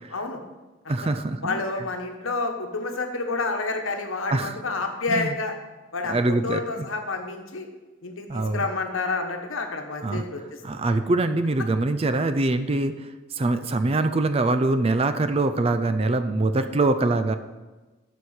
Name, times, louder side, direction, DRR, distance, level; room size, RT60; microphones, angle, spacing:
voice 1, 0.1-0.4 0.8-0.9 1.4-5.5 5.9-7.7 8.0-10.8, left 3 dB, 75° left, 4 dB, 1.2 m, -29 dB
voice 2, 0.9-1.6 4.3-4.6 5.1-5.4 6.1-6.9 8.3-8.6 10.0-10.2 10.6-12.9 13.4-17.4, right 2 dB, 30° right, 10 dB, 0.4 m, -23 dB
7.0 x 6.3 x 6.5 m, 1.2 s
head